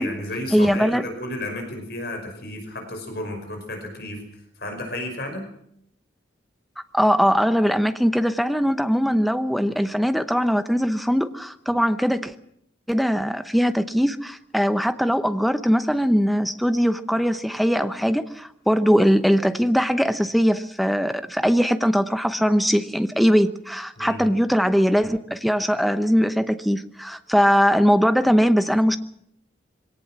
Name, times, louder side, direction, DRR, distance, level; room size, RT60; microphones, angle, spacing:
voice 1, 0.0-4.2 4.6-5.5 24.0-24.3, left 1 dB, 55° left, 4 dB, 5.4 m, -32 dB
voice 2, 0.5-1.0 6.9-12.3 12.9-29.0, equal, ahead, 10 dB, 0.8 m, -21 dB
22.5 x 18.0 x 7.5 m, 0.72 s
head